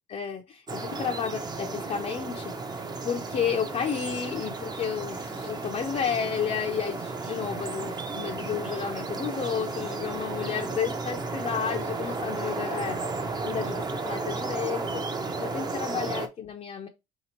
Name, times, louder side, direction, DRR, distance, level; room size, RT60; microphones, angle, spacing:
voice 1, 0.1-2.5 3.0-13.0 13.4-15.0 15.4-16.9, left 7 dB, 40° left, 0.6 m, -32 dB
sound 1, 0.7-16.3, right 3 dB, 25° right, 0.7 m, -33 dB
3.4 x 2.9 x 4.4 m
cardioid pair, 110°, 17 cm